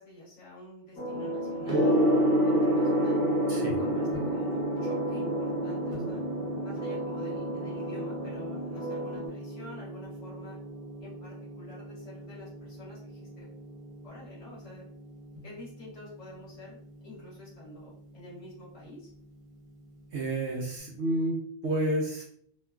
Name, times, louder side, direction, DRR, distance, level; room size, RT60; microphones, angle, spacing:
voice 1, 0.0-3.2 3.6-6.2 6.6-10.6 11.0-13.5 14.0-14.8 15.4-16.8 17.0-19.1, left 1 dB, 60° left, -6 dB, 1.6 m, -48 dB
sound 1, 1.0-9.3, equal, 90° left, 1.2 m, -36 dB
Gong, 1.7-20.7, right 1 dB, 30° right, 0.7 m, -32 dB
voice 2, 20.1-21.4 21.6-22.2, right 1 dB, 65° right, -2 dB, 0.8 m, -30 dB
3.0 x 2.2 x 2.3 m, 0.63 s
omnidirectional pair, 1.4 m